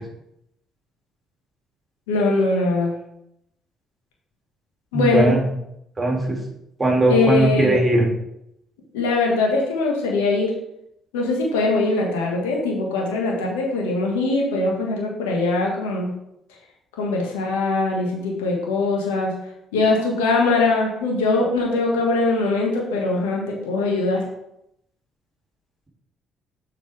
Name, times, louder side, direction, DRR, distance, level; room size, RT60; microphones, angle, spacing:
voice 1, 2.1-2.9 4.9-5.3 7.1-7.8 8.9-10.5 11.1-16.1 17.0-19.3 19.7-24.2, left 3 dB, 90° left, -1 dB, 1.7 m, -21 dB
voice 2, 4.9-5.5 6.0-6.4 6.8-8.1, right 1 dB, 25° right, -1 dB, 2.6 m, -19 dB
7.1 x 6.0 x 3.5 m, 0.80 s
hypercardioid pair, 60°, 0 cm